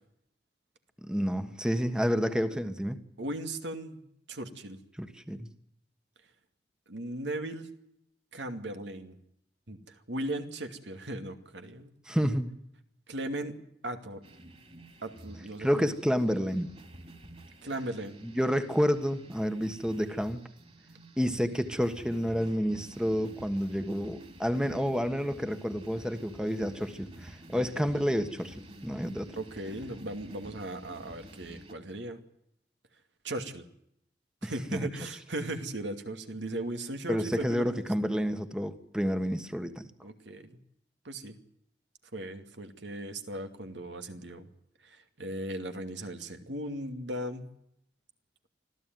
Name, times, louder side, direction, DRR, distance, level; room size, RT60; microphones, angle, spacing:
voice 1, 1.0-3.0 5.0-5.5 12.1-12.5 15.6-16.7 18.2-20.4 21.2-28.6 28.8-29.3 34.4-34.9 37.1-39.8, equal, 5° right, 9 dB, 1.4 m, -29 dB
voice 2, 3.2-4.8 6.9-7.7 8.3-9.2 9.7-11.9 13.1-13.6 13.8-14.2 15.0-15.9 17.6-18.2 27.5-27.8 29.3-32.2 33.2-33.6 34.4-37.9 40.0-40.6 41.0-41.4 42.1-44.5 44.8-47.4, right 1 dB, 85° right, 6 dB, 2.5 m, -37 dB
sound 1, 14.2-31.7, right 1 dB, 35° right, 3.4 m, -50 dB
25.5 x 15.0 x 9.3 m, 0.76 s
head